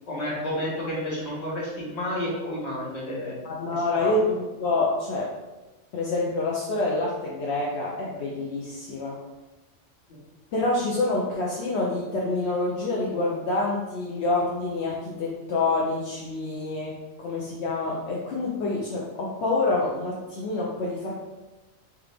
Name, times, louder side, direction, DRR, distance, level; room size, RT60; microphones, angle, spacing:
voice 1, 0.1-3.3 4.0-4.1, left 1 dB, 35° left, -6 dB, 1.3 m, -30 dB
voice 2, 3.4-5.3 5.9-9.2 10.5-21.2, left 2 dB, 70° left, -3 dB, 0.9 m, -27 dB
3.5 x 3.4 x 3.3 m, 1.1 s
omnidirectional pair, 1.2 m